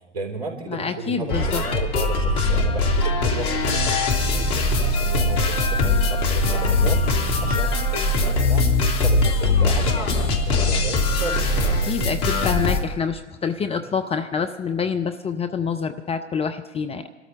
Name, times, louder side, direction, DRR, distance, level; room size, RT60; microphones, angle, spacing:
voice 1, 0.1-8.7 9.0-12.1 12.4-12.5, right 2 dB, 60° right, 2 dB, 4.5 m, -34 dB
voice 2, 0.7-1.6 11.9-17.1, left 6 dB, 15° left, 8 dB, 0.6 m, -26 dB
sound 1, 1.3-12.8, left 2 dB, 45° left, 2.2 m, -21 dB
26.5 x 13.0 x 3.7 m, 1.2 s
figure-of-eight pair, 90°, 36 cm